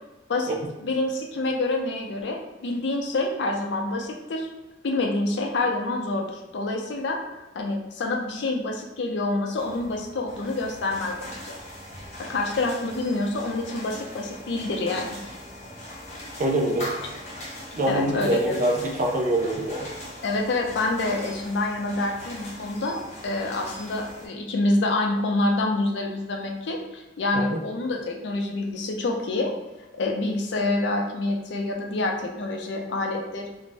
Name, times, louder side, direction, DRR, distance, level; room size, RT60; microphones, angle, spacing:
voice 1, 0.3-4.5 4.8-7.2 7.5-11.6 12.2-15.2 17.9-18.6 20.2-29.5 30.0-33.5, left 2 dB, 75° left, 1 dB, 0.4 m, -27 dB
sound 1, 9.5-24.3, left 1 dB, 40° left, 0.7 m, -40 dB
voice 2, 16.4-17.0 17.7-19.9 27.3-27.6, right 1 dB, 45° right, 0 dB, 0.4 m, -24 dB
2.5 x 2.0 x 3.2 m, 1.0 s
head